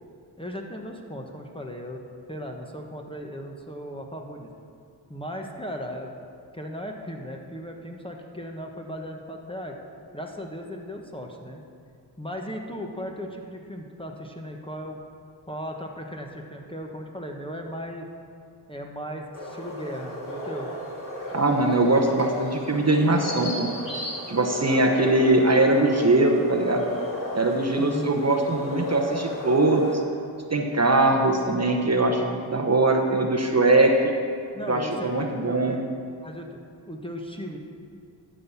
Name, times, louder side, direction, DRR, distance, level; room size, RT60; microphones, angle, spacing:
voice 1, 0.4-4.5 5.1-6.1 6.5-9.7 10.1-11.6 12.2-15.0 15.5-18.1 18.7-20.7 27.8-28.2 34.5-35.8 36.2-36.5 36.8-37.6, equal, 10° left, 1 dB, 1.1 m, -37 dB
sound 1, 19.3-30.0, left 1 dB, 40° left, 2.5 m, -34 dB
voice 2, 21.3-23.7 24.3-26.9 27.3-30.0 30.5-34.1 34.7-35.8, right 2 dB, 30° right, 2 dB, 1.0 m, -21 dB
12.0 x 4.1 x 7.0 m, 2.3 s
cardioid pair, 45°, 48 cm